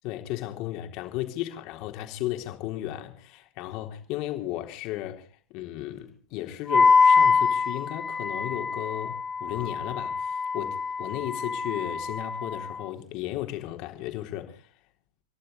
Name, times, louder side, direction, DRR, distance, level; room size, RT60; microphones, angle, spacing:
voice 1, 0.0-14.7, left 14 dB, 40° left, 3.8 m, -35 dB
Wind instrument woodwind instrument, 6.7-12.8, left 5 dB, 10° left, 1.3 m, -24 dB
27.0 x 11.5 x 4.1 m
figure-of-eight pair, 100°, 0 cm